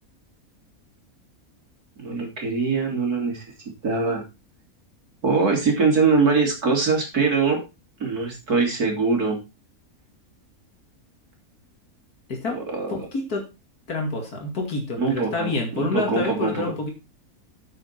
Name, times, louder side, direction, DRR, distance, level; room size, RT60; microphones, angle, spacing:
voice 1, 2.0-3.5 3.8-4.2 5.2-7.6 8.0-9.4 12.5-12.9 15.0-16.7, right 4 dB, 90° right, 1 dB, 4.0 m, -22 dB
voice 2, 12.3-12.6 12.9-13.5 13.9-16.9, left 3 dB, 90° left, 1 dB, 3.0 m, -28 dB
9.0 x 8.5 x 4.4 m, 0.27 s
omnidirectional pair, 1.6 m